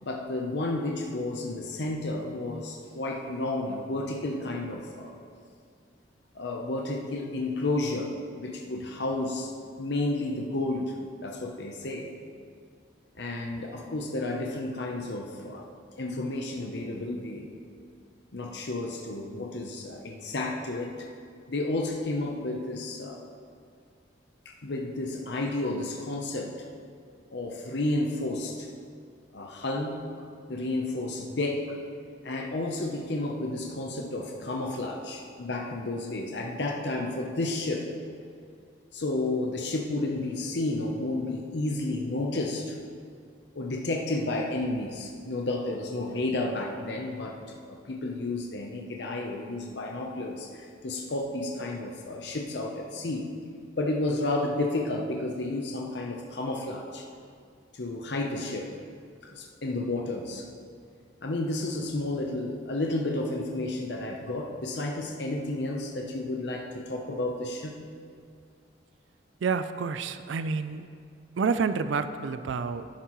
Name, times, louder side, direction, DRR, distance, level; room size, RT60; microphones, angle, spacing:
voice 1, 0.0-5.1 6.3-9.5 9.8-10.9 11.2-12.1 13.2-15.7 16.0-17.5 18.3-21.1 21.5-23.2 24.5-26.5 27.3-28.7 29.3-30.0 30.5-31.8 32.2-37.9 38.9-42.8 43.5-47.4 47.7-53.2 53.8-57.1 57.7-58.7 59.2-60.5 61.2-67.8, left 2 dB, 65° left, 1 dB, 0.8 m, -31 dB
voice 2, 69.4-70.9 71.4-72.9, right 5 dB, 85° right, 11 dB, 0.4 m, -29 dB
11.5 x 10.0 x 3.1 m, 2.3 s
head